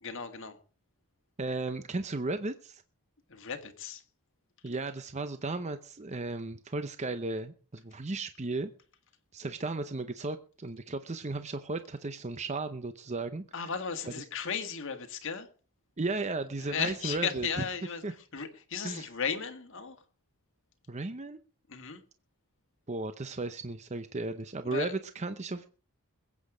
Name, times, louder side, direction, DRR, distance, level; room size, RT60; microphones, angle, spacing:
voice 1, 0.0-0.6 3.3-4.0 13.5-15.5 16.6-20.0 21.7-22.0 24.6-24.9, left 6 dB, 60° left, 1.9 m, -35 dB
voice 2, 1.4-2.8 4.6-8.7 9.3-13.4 16.0-17.5 18.0-18.1 18.8-19.1 20.9-21.4 22.9-25.7, right 3 dB, 30° right, 0.7 m, -35 dB
21.0 x 8.6 x 5.0 m
head